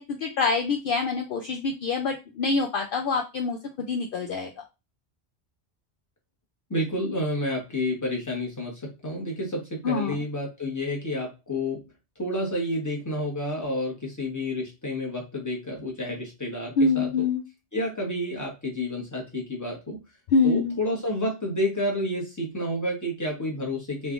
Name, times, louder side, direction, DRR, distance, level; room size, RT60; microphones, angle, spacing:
voice 1, 0.0-4.5 9.8-10.2 16.8-17.4 20.3-20.8, left 4 dB, 60° left, 3 dB, 0.7 m, -25 dB
voice 2, 6.7-11.9 12.2-17.1 17.7-20.0 20.4-24.1, left 1 dB, 15° left, -1 dB, 1.1 m, -30 dB
3.4 x 3.3 x 2.4 m, 0.26 s
omnidirectional pair, 1.1 m